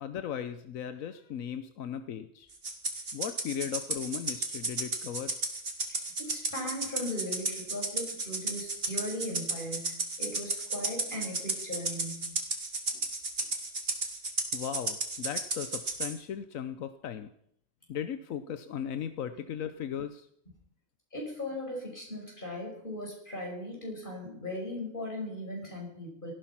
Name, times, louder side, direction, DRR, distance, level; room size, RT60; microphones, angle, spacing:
voice 1, 0.0-2.5 3.1-5.3 14.5-17.3 17.9-20.3, left 8 dB, 85° left, 11 dB, 1.2 m, -37 dB
Rattle (instrument), 2.6-16.1, right 3 dB, 45° right, 2.3 m, -33 dB
voice 2, 5.9-12.3 21.1-26.3, left 1 dB, 40° left, 0 dB, 6.1 m, -38 dB
18.0 x 13.5 x 5.9 m, 0.69 s
omnidirectional pair, 1.4 m